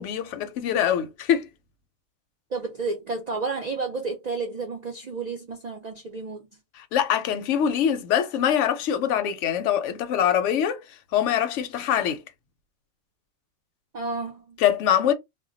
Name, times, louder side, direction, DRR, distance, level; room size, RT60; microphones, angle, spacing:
voice 1, 0.0-1.5 6.7-12.2 14.6-15.1, left 9 dB, 70° left, 0.8 m, -24 dB
voice 2, 2.5-6.5 13.9-14.6, right 4 dB, 65° right, 0.4 m, -31 dB
2.2 x 2.1 x 3.7 m
omnidirectional pair, 1.4 m